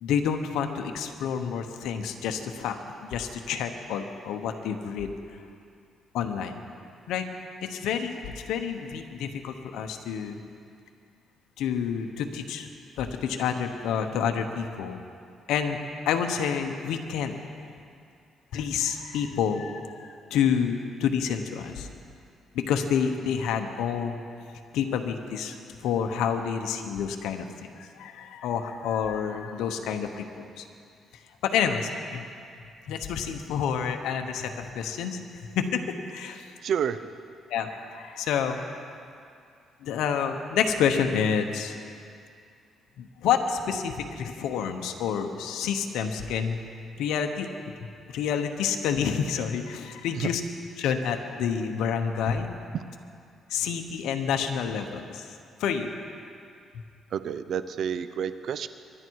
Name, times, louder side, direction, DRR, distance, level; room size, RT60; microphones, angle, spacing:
voice 1, 0.0-2.8 3.0-5.1 6.1-6.5 7.1-7.3 7.6-10.4 11.6-12.7 13.0-15.0 15.5-15.8 16.1-17.3 18.5-21.9 22.5-24.2 24.7-27.5 27.7-30.6 31.4-32.3 32.9-35.2 35.5-36.5 37.5-39.0 39.8-41.7 43.0-46.6 47.0-47.5 48.1-50.4 50.8-52.5 53.5-55.3 55.6-55.9, left 7 dB, 85° left, 5 dB, 1.1 m, -28 dB
voice 2, 36.6-37.1 50.1-50.3 52.7-52.8 57.1-58.7, right 8 dB, 65° right, 13 dB, 0.7 m, -29 dB
24.0 x 11.0 x 4.7 m, 2.4 s
cardioid pair, 90°, 0 cm